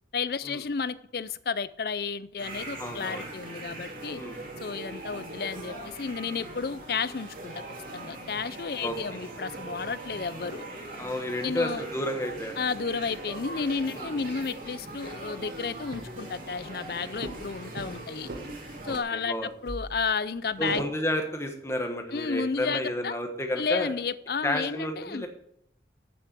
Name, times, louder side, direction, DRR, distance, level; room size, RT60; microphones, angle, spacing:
voice 1, 0.1-4.2 4.6-7.6 7.9-10.7 11.4-11.8 12.6-18.3 18.8-20.8 22.1-23.1 23.6-25.3, left 5 dB, 55° left, 16 dB, 0.5 m, -32 dB
sound 1, 2.4-19.0, right 2 dB, 50° right, 2.7 m, -41 dB
voice 2, 2.8-3.2 4.1-4.4 8.8-9.2 11.0-12.6 13.9-14.1 18.9-19.5 20.6-23.9 24.4-25.3, left 1 dB, 15° left, 4 dB, 1.3 m, -31 dB
sound 2, 15.4-15.5 15.8-16.4 16.6-19.0 19.3-20.9, right 1 dB, 75° right, 1.6 m, -40 dB
8.6 x 7.1 x 8.1 m, 0.73 s
head